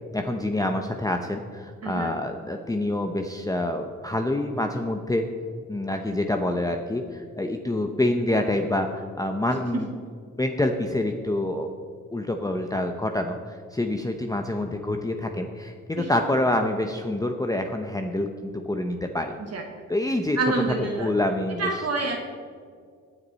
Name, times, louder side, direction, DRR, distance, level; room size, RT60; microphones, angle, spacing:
voice 1, 0.1-5.3 5.7-9.9 10.4-11.7 12.1-19.4 19.9-20.4 20.9-21.7, left 1 dB, 10° left, 4 dB, 0.8 m, -27 dB
voice 2, 1.8-2.1 16.0-16.1 19.5-19.6 20.4-21.1 21.6-22.2, right 3 dB, 55° right, 1 dB, 1.5 m, -27 dB
20.0 x 6.7 x 4.1 m, 2.1 s
cardioid pair, 75°, 31 cm